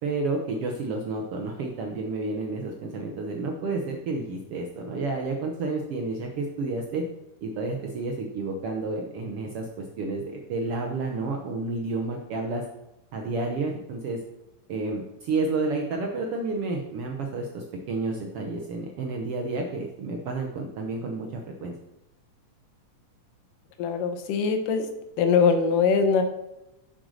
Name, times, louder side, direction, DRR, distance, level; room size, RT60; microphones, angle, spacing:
voice 1, 0.0-7.0 7.4-12.6 13.1-14.2 14.7-21.7, right 3 dB, 70° right, 2 dB, 1.4 m, -30 dB
voice 2, 23.8-24.9 25.2-26.2, left 5 dB, 85° left, 7 dB, 2.6 m, -22 dB
7.8 x 6.7 x 6.3 m, 0.91 s
omnidirectional pair, 3.7 m